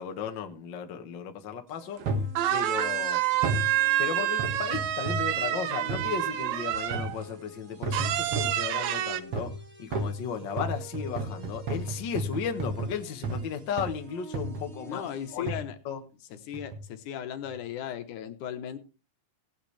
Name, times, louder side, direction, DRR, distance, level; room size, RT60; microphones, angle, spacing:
voice 1, 0.0-2.0 2.5-3.2 4.0-9.5 9.8-15.0 15.3-16.0, left 7 dB, 50° left, 1.4 m, -35 dB
sound 1, 1.7-15.4, right 3 dB, 25° right, 2.0 m, -50 dB
sound 2, 2.0-2.1 2.4-7.2 7.9-9.2, right 13 dB, 70° right, 2.1 m, -28 dB
sound 3, 2.1-2.4 3.4-3.7 4.4-5.4 5.9-6.1 6.9-7.3 7.8-8.6 9.3-9.6 9.9-13.5 13.8-14.0 14.3-14.7 15.5-15.7 16.5-16.9 17.4-17.5, right 2 dB, 50° right, 2.4 m, -32 dB
voice 2, 14.9-15.8 16.4-18.8, left 10 dB, 80° left, 2.6 m, -36 dB
18.0 x 8.9 x 3.3 m
omnidirectional pair, 3.6 m